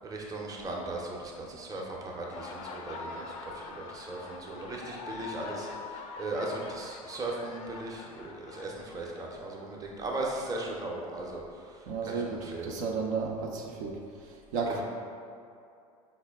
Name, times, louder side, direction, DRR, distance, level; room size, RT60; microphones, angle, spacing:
voice 1, 0.0-12.8 14.7-14.8, right 2 dB, 20° right, -2 dB, 0.6 m, -38 dB
Laughter, 2.0-9.7, left 4 dB, 65° left, 0.4 m, -44 dB
voice 2, 11.9-14.8, right 4 dB, 65° right, -1 dB, 0.5 m, -33 dB
4.7 x 2.1 x 3.4 m, 2.5 s
hypercardioid pair, 80°, 19 cm